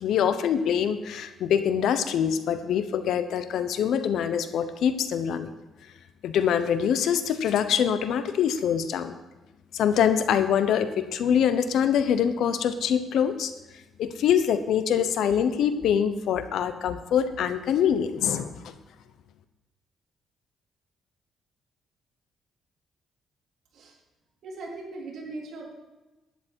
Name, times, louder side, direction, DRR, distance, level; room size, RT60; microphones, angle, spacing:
voice 1, 0.0-5.5 6.2-9.2 9.7-13.5 14.0-18.7, left 8 dB, 75° left, 11 dB, 1.0 m, -24 dB
voice 2, 24.4-25.7, right 2 dB, 65° right, -2 dB, 3.7 m, -39 dB
11.5 x 10.5 x 4.6 m, 1.1 s
cardioid pair, 90°, 0 cm